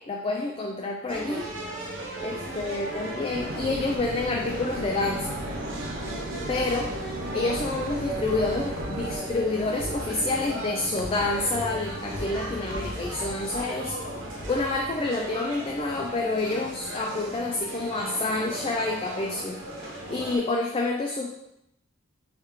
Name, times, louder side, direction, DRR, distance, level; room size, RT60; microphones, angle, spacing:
voice 1, 0.1-1.5 2.2-5.4 6.5-6.9 7.3-14.0 14.5-21.3, left 2 dB, 25° left, 1 dB, 0.3 m, -28 dB
sound 1, 1.1-20.4, right 1 dB, 65° right, 1.0 m, -36 dB
sound 2, 3.3-9.2, right 2 dB, 45° right, 0.4 m, -36 dB
sound 3, 6.9-15.3, left 1 dB, 60° left, 0.7 m, -42 dB
3.5 x 3.2 x 4.7 m, 0.84 s
head